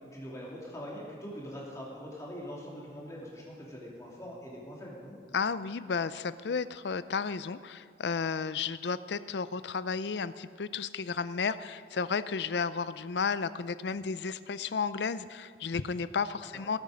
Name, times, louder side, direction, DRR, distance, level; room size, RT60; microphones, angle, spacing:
voice 1, 0.0-5.1 16.5-16.7, equal, 20° left, -4 dB, 2.8 m, -43 dB
voice 2, 5.3-16.8, left 5 dB, 80° left, 15 dB, 0.5 m, -33 dB
19.0 x 9.1 x 5.2 m, 2.3 s
head